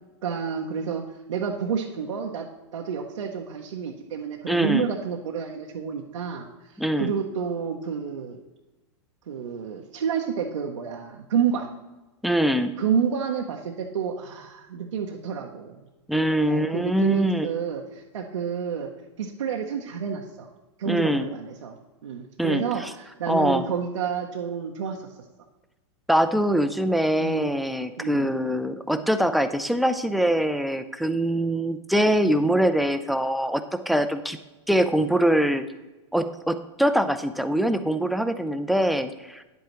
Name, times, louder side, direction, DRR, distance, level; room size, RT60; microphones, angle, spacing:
voice 1, 0.2-1.0 1.3-2.5 2.7-6.5 6.7-8.4 9.3-11.7 12.8-15.8 16.3-18.9 19.2-20.5 20.8-21.7 22.0-25.0 27.2-27.5 28.0-28.3, right 7 dB, 85° right, 0 dB, 0.8 m, -29 dB
voice 2, 4.5-4.9 6.8-7.1 12.2-12.7 16.1-17.5 20.9-21.3 22.4-22.9 23.3-23.6 26.1-34.4 34.7-35.6 36.1-39.4, right 1 dB, ahead, 9 dB, 0.4 m, -23 dB
10.0 x 8.0 x 3.0 m, 1.1 s
hypercardioid pair, 120°, 15 cm